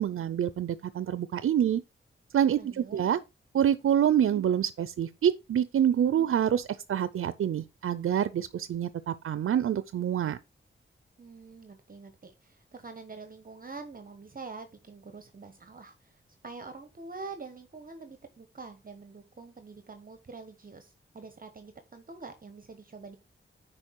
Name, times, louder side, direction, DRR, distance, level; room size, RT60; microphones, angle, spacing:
voice 1, 0.0-1.8 2.3-3.2 3.5-10.4, right 9 dB, 85° right, 0.5 m, -26 dB
voice 2, 2.6-3.0 11.2-16.2 16.4-23.2, right 4 dB, 45° right, 1.1 m, -45 dB
9.8 x 4.3 x 4.6 m
wide cardioid pair, 90°, 21 cm